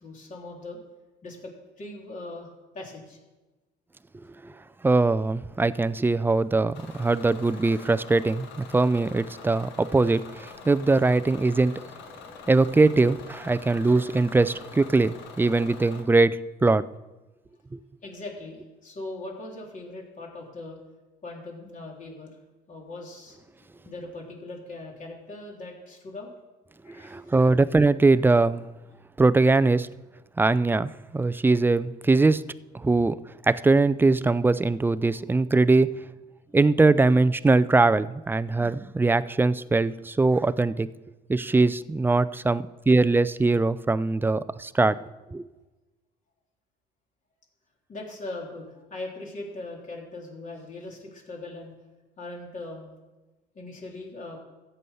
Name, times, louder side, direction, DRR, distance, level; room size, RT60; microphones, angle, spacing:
voice 1, 0.0-0.8 1.2-3.2 4.4-4.6 18.0-20.8 21.2-22.3 22.7-23.4 23.8-26.3 26.8-27.5 47.9-51.7 52.2-52.9 53.5-54.4, left 2 dB, 45° left, -1 dB, 3.4 m, -40 dB
voice 2, 4.8-11.7 12.5-16.8 17.7-17.8 26.9-28.7 29.2-29.9 30.4-32.4 32.7-33.2 33.4-35.9 36.5-40.9 41.3-45.0 45.3-45.5, right 3 dB, 10° right, 15 dB, 0.4 m, -21 dB
Bus / Engine, 6.7-16.0, left 5 dB, 85° left, 1.6 m, -45 dB
14.0 x 7.9 x 5.6 m, 1.1 s
cardioid pair, 100°, 18 cm